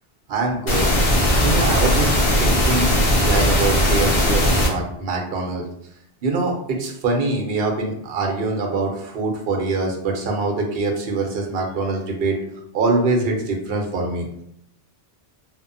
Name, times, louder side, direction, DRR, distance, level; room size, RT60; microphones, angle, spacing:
voice 1, 0.3-0.9 1.4-2.1 2.4-5.6 6.2-12.4 12.7-14.4, right 3 dB, 65° right, 1 dB, 0.8 m, -24 dB
sound 1, 0.7-4.7, equal, 45° left, 0.4 m, -18 dB
2.8 x 2.1 x 2.5 m, 0.74 s
omnidirectional pair, 1.1 m